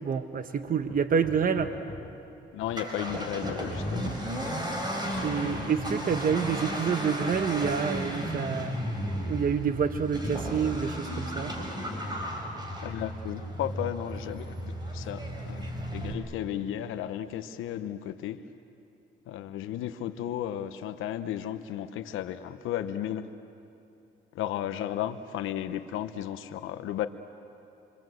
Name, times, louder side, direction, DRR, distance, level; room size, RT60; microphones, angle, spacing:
voice 1, 0.0-1.7 5.2-8.8 9.3-11.5, right 6 dB, 45° right, 9 dB, 1.1 m, -28 dB
Hammer, 0.9-2.3 2.7-4.1 4.7-6.8 7.3-8.3, left 4 dB, 35° left, 4.3 m, -44 dB
voice 2, 2.5-4.2 12.8-18.4 19.3-23.3 24.3-27.1, left 11 dB, 90° left, 10 dB, 1.0 m, -34 dB
Accelerating revving vroom, 2.6-16.1, equal, 20° right, 5.3 m, -34 dB
28.0 x 24.0 x 7.8 m, 2.7 s
cardioid pair, 90°, 20 cm